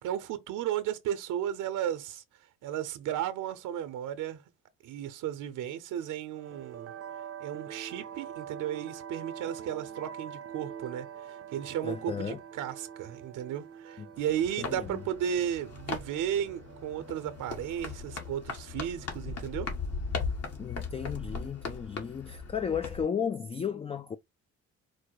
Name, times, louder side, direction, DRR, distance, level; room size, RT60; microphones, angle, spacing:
voice 1, 0.0-2.2 2.6-4.4 4.8-6.9 7.4-19.7, right 10 dB, 85° right, 0.8 m, -34 dB
sound 1, 6.4-20.5, right 8 dB, 50° right, 0.6 m, -46 dB
voice 2, 11.8-12.4 14.0-14.1 14.6-15.0 20.6-24.2, left 7 dB, 20° left, 0.3 m, -34 dB
sound 2, 14.2-23.0, left 4 dB, 55° left, 1.7 m, -38 dB
4.6 x 2.1 x 4.6 m
cardioid pair, 90°, 30 cm